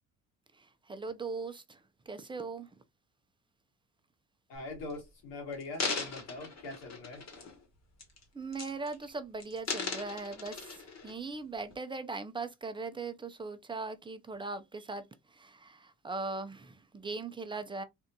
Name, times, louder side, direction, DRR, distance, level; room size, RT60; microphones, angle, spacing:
voice 1, 0.9-1.8 2.1-2.7 8.3-15.0 15.3-17.8, right 3 dB, 15° right, 0.5 m, -39 dB
voice 2, 4.5-7.2, left 3 dB, 85° left, 1.9 m, -42 dB
sound 1, 4.6-4.9 5.5-7.6 8.0-8.2 8.5-9.1 9.4-11.1 11.7-11.8, left 4 dB, 40° left, 1.3 m, -38 dB
3.4 x 2.5 x 2.7 m
supercardioid pair, 85°, 40 cm